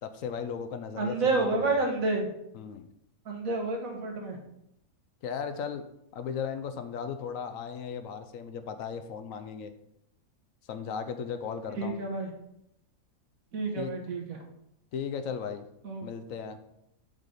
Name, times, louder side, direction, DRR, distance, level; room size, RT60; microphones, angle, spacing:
voice 1, 0.0-1.8 2.5-2.9 5.2-5.8 6.1-9.7 10.7-12.0 13.8-13.9 14.9-15.6 16.0-16.6, left 6 dB, 70° left, 9 dB, 1.0 m, -36 dB
voice 2, 1.0-2.3 3.2-4.4 11.8-12.3 13.5-14.4 15.8-16.1, right 3 dB, 70° right, 1 dB, 1.7 m, -29 dB
7.3 x 5.0 x 4.1 m, 0.79 s
omnidirectional pair, 1.5 m